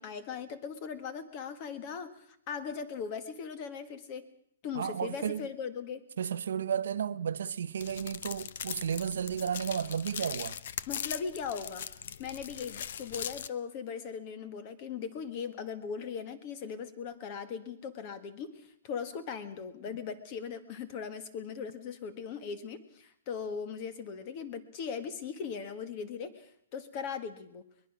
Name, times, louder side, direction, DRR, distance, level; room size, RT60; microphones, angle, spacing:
voice 1, 0.0-4.2 4.6-6.0 10.9-11.9 12.2-27.6, left 6 dB, 25° left, 1.5 m, -39 dB
voice 2, 4.7-5.5 6.2-10.6, right 8 dB, 65° right, 0.8 m, -33 dB
sound 1, 7.8-13.5, left 8 dB, 50° left, 0.8 m, -40 dB
22.5 x 21.0 x 6.1 m
hypercardioid pair, 175°, 0 cm